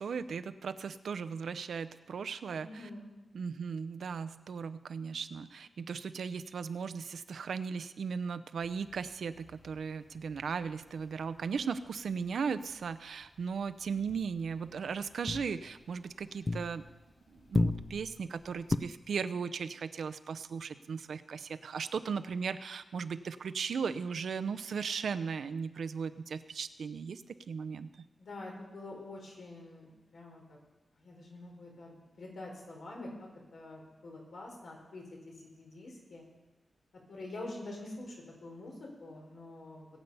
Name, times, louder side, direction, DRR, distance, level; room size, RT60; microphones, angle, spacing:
voice 1, 0.0-2.9 3.3-16.8 17.3-27.9, right 6 dB, 85° right, 11 dB, 0.6 m, -37 dB
voice 2, 2.6-3.1 28.2-30.6 31.0-36.3 37.1-38.2 38.4-39.9, left 2 dB, 80° left, -1 dB, 4.4 m, -46 dB
sound 1, 8.6-12.3 12.6-13.0 13.2-17.1 17.4-18.8, left 3 dB, 35° left, 0.5 m, -37 dB
20.0 x 8.2 x 5.5 m, 1.0 s
wide cardioid pair, 125°, 0 cm